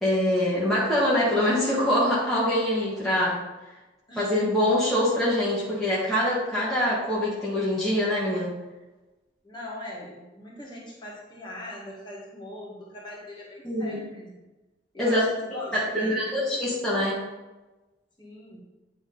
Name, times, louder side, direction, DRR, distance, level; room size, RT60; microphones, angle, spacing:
voice 1, 0.0-3.4 4.2-8.5 13.6-14.0 15.0-15.2 15.7-17.2, left 1 dB, ahead, -9 dB, 1.5 m, -24 dB
voice 2, 9.4-14.4 14.9-16.7 18.2-18.6, left 1 dB, 25° left, -5 dB, 1.8 m, -41 dB
9.6 x 3.6 x 4.1 m, 1.1 s
head